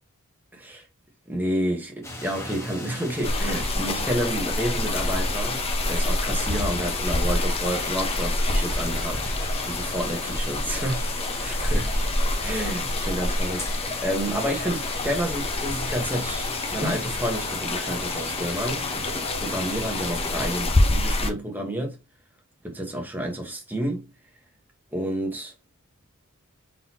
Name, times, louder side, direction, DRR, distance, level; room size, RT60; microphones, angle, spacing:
voice 1, 0.5-0.9 1.3-9.3 9.6-11.9 12.4-22.0 22.6-24.1 24.9-25.5, right 1 dB, 10° right, 1.2 m, -30 dB
sound 1, 2.0-20.6, left 1 dB, 15° left, 1.3 m, -38 dB
sound 2, 3.2-21.3, left 2 dB, 30° left, 0.7 m, -27 dB
4.1 x 4.0 x 2.8 m
head